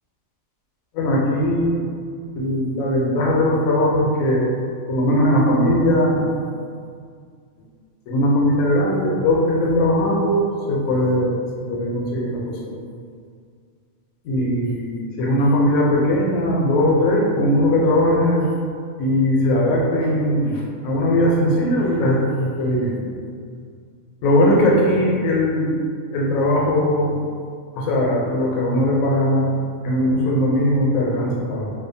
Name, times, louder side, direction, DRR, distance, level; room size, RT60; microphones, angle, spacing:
voice 1, 0.9-1.9 2.4-4.6 4.9-6.3 8.1-11.4 11.7-12.6 14.2-18.4 19.0-23.0 24.2-25.7 26.1-27.3 27.7-29.5 29.8-31.7, left 1 dB, 80° left, -3 dB, 1.0 m, -19 dB
2.6 x 2.3 x 2.6 m, 2.1 s
omnidirectional pair, 1.4 m